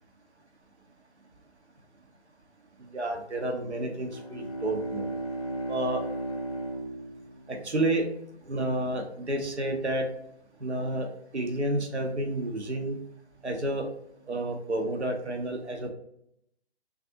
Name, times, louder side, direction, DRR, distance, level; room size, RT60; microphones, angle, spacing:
voice 1, 2.9-5.1 5.7-6.0 7.5-8.0 8.5-10.0 10.6-11.1 11.3-13.0 13.4-13.8 14.3-15.9, right 1 dB, 85° right, 3 dB, 0.9 m, -30 dB
Bowed string instrument, 3.8-8.4, right 1 dB, 35° left, 0.4 m, -36 dB
3.3 x 2.4 x 2.6 m, 0.75 s
figure-of-eight pair, 140°, 33 cm